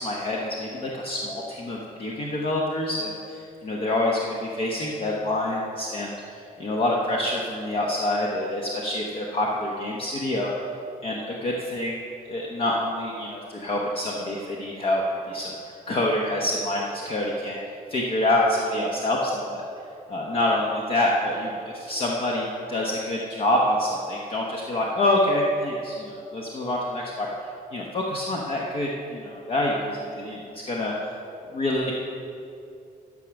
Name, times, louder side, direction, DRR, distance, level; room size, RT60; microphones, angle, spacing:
voice 1, 0.0-6.2 6.6-10.5 11.0-12.0 12.3-15.5 15.9-17.6 17.9-19.6 20.1-27.3 27.7-30.9 31.5-31.9, left 1 dB, 40° left, -2 dB, 1.0 m, -26 dB
12.0 x 6.5 x 5.9 m, 2.6 s
cardioid pair, 175°, 14 cm